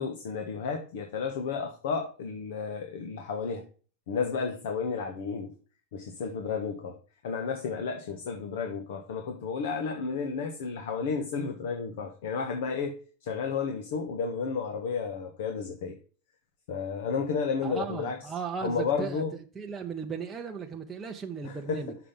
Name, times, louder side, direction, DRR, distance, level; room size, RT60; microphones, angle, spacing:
voice 1, 0.0-3.7 4.1-5.5 5.9-7.0 7.2-16.0 16.7-18.2 18.6-19.3 21.4-22.0, left 5 dB, 70° left, 1.3 m, -32 dB
voice 2, 17.6-19.2 19.5-21.9, right 5 dB, 10° right, 0.8 m, -36 dB
6.3 x 5.9 x 5.2 m
supercardioid pair, 160°, 0 cm